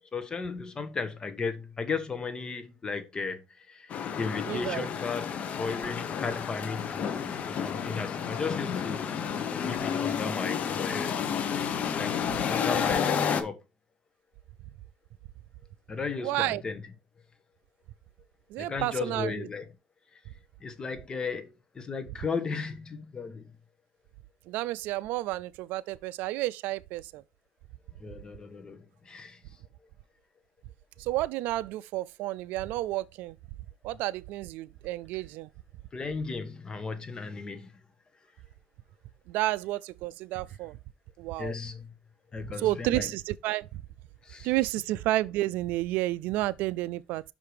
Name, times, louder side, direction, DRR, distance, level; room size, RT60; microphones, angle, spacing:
voice 1, 0.1-9.2 9.6-11.1 12.0-13.6 15.9-16.8 18.6-19.6 20.1-20.2 20.6-23.5 28.0-29.4 35.9-37.7 41.4-41.9 42.3-43.1 44.2-44.5, left 4 dB, 30° left, 1.3 m, -35 dB
sound 1, 3.9-13.4, left 7 dB, 50° left, 1.1 m, -31 dB
voice 2, 4.5-4.9 16.2-16.6 18.5-19.5 24.5-27.2 31.0-33.4 33.8-35.5 39.3-40.8 41.2-41.6 42.6-43.7 44.4-47.2, right 16 dB, 75° right, 0.3 m, -31 dB
5.8 x 5.1 x 4.8 m
cardioid pair, 105°, 3 cm